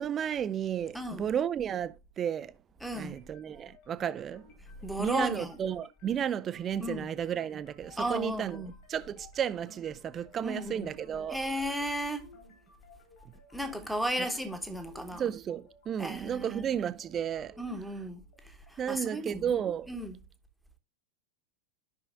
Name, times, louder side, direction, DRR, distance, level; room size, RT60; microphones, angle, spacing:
voice 1, 0.0-2.5 2.9-4.4 5.0-8.6 8.9-11.4 15.2-17.5 18.8-19.9, right 9 dB, 25° right, 0.4 m, -33 dB
voice 2, 0.9-1.3 2.8-3.1 4.8-5.6 6.8-7.1 8.0-8.7 10.4-10.9 11.3-12.3 13.5-15.3 16.0-16.7 17.6-19.6 19.9-20.2, equal, ahead, 1.1 m, -35 dB
sound 1, 3.2-19.1, left 3 dB, 50° left, 4.3 m, -58 dB
13.0 x 5.7 x 2.5 m
figure-of-eight pair, 90°, 0 cm